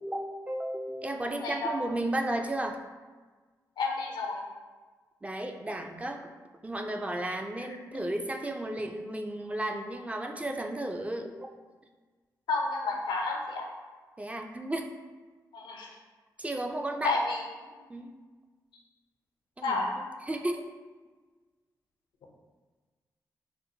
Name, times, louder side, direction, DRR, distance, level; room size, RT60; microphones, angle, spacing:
voice 1, 0.0-2.8 5.2-6.3 6.6-11.5 14.2-14.9 16.4-17.2 17.9-18.1 19.6-20.6, right 1 dB, 15° right, 4 dB, 0.4 m, -34 dB
voice 2, 1.4-1.7 3.8-4.4 12.5-13.6 15.5-15.9 17.0-17.7 19.6-19.9, left 3 dB, 85° left, 0 dB, 0.5 m, -30 dB
4.2 x 2.1 x 2.7 m, 1.4 s
cardioid pair, 55°, 8 cm